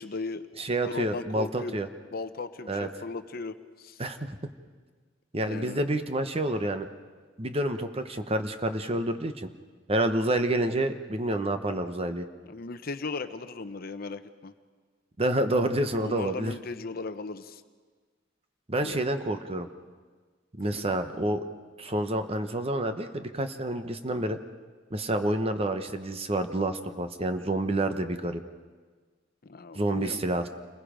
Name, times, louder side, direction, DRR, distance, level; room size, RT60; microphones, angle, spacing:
voice 1, 0.0-0.4 0.9-1.8 2.1-4.0 5.4-5.8 12.5-14.5 16.0-17.6 18.8-19.0 20.7-20.8 29.4-30.2, left 3 dB, 50° left, 10 dB, 0.8 m, -37 dB
voice 2, 0.6-1.9 2.7-2.9 4.0-4.4 5.3-6.9 7.4-9.5 9.9-12.3 15.2-16.5 18.7-19.7 20.6-21.4 21.8-24.4 24.9-28.4 29.7-30.5, right 1 dB, 30° right, 8 dB, 1.0 m, -28 dB
29.0 x 21.0 x 5.1 m, 1.5 s
head